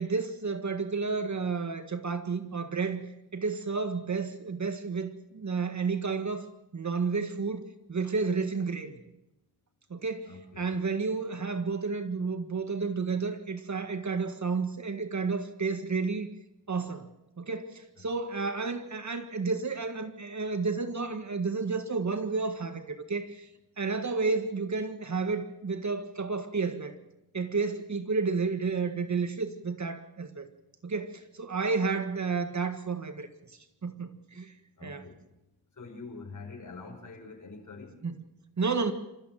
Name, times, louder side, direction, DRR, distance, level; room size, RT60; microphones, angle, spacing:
voice 1, 0.0-3.0 3.3-6.5 6.7-9.0 9.9-16.3 16.7-17.1 17.4-23.5 23.8-27.0 27.3-30.5 30.8-33.3 33.8-34.5 34.8-35.0 38.0-38.1 38.6-38.9, right 4 dB, 40° right, 8 dB, 1.8 m, -31 dB
voice 2, 10.3-10.8 18.0-18.1 34.8-35.2 35.7-38.0, left 3 dB, 45° left, 2 dB, 6.5 m, -45 dB
27.5 x 14.5 x 7.6 m, 0.91 s
cardioid pair, 85°, 41 cm